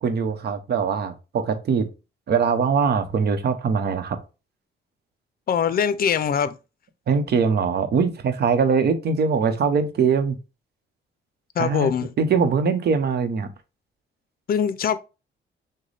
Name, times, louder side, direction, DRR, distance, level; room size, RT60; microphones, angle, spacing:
voice 1, 0.0-1.9 2.3-4.2 7.1-10.4 11.6-11.9 12.2-13.5, right 5 dB, 55° right, 0.9 m, -22 dB
voice 2, 5.5-6.6 11.6-12.1 14.5-15.0, left 7 dB, 50° left, 0.6 m, -22 dB
6.3 x 2.2 x 3.3 m
cardioid pair, 90°, 20 cm